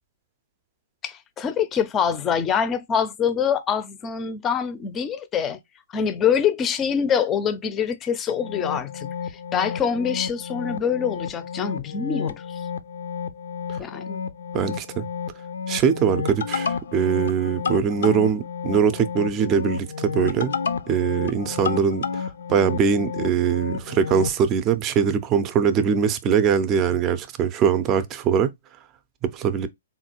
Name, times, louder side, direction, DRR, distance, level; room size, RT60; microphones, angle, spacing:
voice 1, 1.0-5.6 5.9-12.6 13.8-14.2, left 7 dB, 20° left, 0.5 m, -25 dB
sound 1, 8.3-24.4, left 6 dB, 75° left, 0.5 m, -31 dB
voice 2, 14.5-15.0 15.7-20.5 20.9-22.2 22.5-28.5 29.2-29.7, right 7 dB, 25° right, 0.5 m, -22 dB
3.7 x 2.4 x 4.3 m
hypercardioid pair, 140°, 0 cm